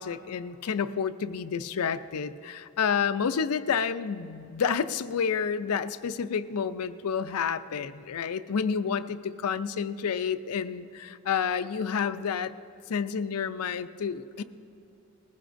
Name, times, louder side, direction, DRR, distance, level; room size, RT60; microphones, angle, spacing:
voice 1, 0.0-12.5 12.9-14.4, left 6 dB, 80° left, 12 dB, 0.5 m, -29 dB
20.0 x 15.0 x 2.6 m, 2.8 s
head